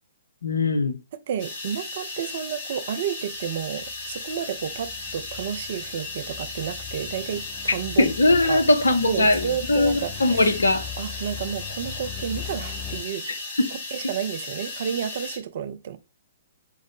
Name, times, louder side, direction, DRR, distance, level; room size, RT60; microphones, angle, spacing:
voice 1, 0.4-1.0 8.0-10.9 13.6-13.7, left 2 dB, 70° left, 0.7 m, -20 dB
voice 2, 1.3-8.1 8.4-8.6 9.0-10.5 11.0-13.2 13.9-16.0, right 8 dB, 50° right, 0.4 m, -31 dB
sound 1, 1.4-15.4, left 2 dB, 45° left, 2.0 m, -36 dB
sound 2, 3.4-13.0, left 11 dB, 5° left, 0.5 m, -41 dB
4.6 x 2.1 x 3.9 m
figure-of-eight pair, 120°, 0 cm